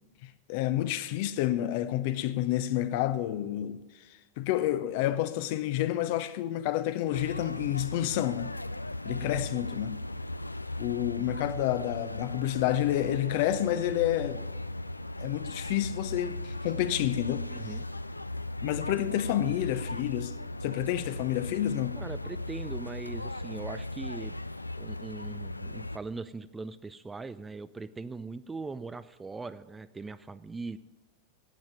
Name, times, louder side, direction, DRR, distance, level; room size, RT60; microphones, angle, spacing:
voice 1, 0.2-4.0 4.4-8.6 9.0-10.0 10.8-14.4 15.2-17.5 18.6-20.3 20.6-22.0, left 13 dB, 50° left, 0.6 m, -29 dB
sound 1, 7.1-26.0, left 2 dB, 85° left, 0.3 m, -37 dB
voice 2, 17.5-17.8 21.9-24.3 24.8-30.8, right 3 dB, 10° right, 0.4 m, -40 dB
9.2 x 8.7 x 9.2 m
figure-of-eight pair, 90°, 0 cm